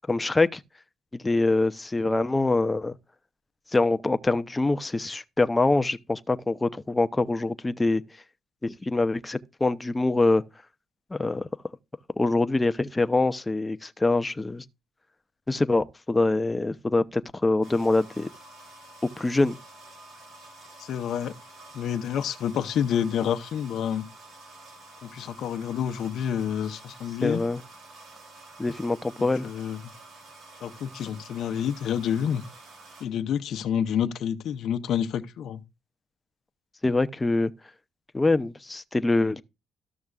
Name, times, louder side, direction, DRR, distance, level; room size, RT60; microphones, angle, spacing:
voice 1, 0.1-0.6 1.2-3.0 3.7-8.0 8.6-10.4 11.1-11.5 12.2-14.6 15.5-18.3 19.2-19.6 27.2-27.6 28.6-29.5 36.8-37.5 38.1-39.4, left 2 dB, 15° left, 0.6 m, -24 dB
sound 1, 17.6-33.1, right 2 dB, 70° right, 2.9 m, -49 dB
voice 2, 20.8-21.3 21.7-24.1 25.0-27.4 29.2-29.8 30.6-32.4 33.0-35.6, left 9 dB, 75° left, 0.8 m, -28 dB
13.5 x 6.4 x 2.4 m
cardioid pair, 90°, 0 cm